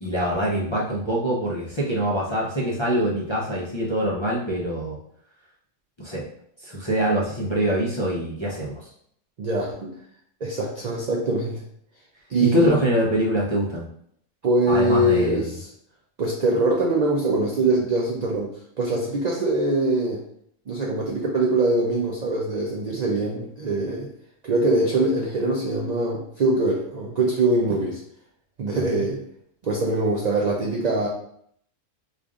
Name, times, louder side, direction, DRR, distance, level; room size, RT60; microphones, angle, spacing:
voice 1, 0.0-5.0 6.0-6.2 6.6-8.9 12.4-13.8 14.7-15.5 28.7-29.0, right 1 dB, 35° left, -7 dB, 0.5 m, -24 dB
voice 2, 9.4-9.9 10.4-11.6 12.3-12.7 14.4-15.7 16.2-18.5 18.8-20.2 20.7-24.1 24.4-28.0 28.6-29.2 29.6-31.1, right 2 dB, 65° right, -2 dB, 0.4 m, -23 dB
5.0 x 2.4 x 2.4 m, 0.69 s
omnidirectional pair, 1.3 m